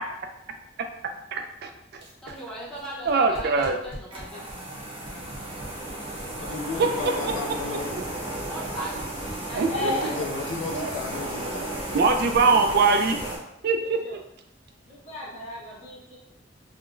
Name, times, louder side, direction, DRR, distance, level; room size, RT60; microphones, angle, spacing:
voice 1, 1.3-1.7 3.1-3.7 6.8-7.1 9.5-9.9 10.7-10.9 11.9-13.2 13.6-14.0, right 4 dB, 60° right, 5 dB, 0.4 m, -22 dB
sound 1, 1.9-9.9, equal, 75° right, 1.0 m, -44 dB
voice 2, 2.2-4.7 8.4-9.2 9.4-10.6, right 1 dB, 5° left, -7 dB, 0.8 m, -39 dB
sound 2, 4.1-13.4, right 1 dB, 30° right, 0.8 m, -34 dB
voice 3, 6.3-8.0 9.8-12.3, left 4 dB, 75° left, 3 dB, 0.3 m, -35 dB
voice 4, 7.6-8.2 9.7-10.2 10.8-11.3 13.8-14.2 14.9-16.2, left 2 dB, 40° left, -6 dB, 1.0 m, -36 dB
3.6 x 2.1 x 2.5 m, 0.80 s
head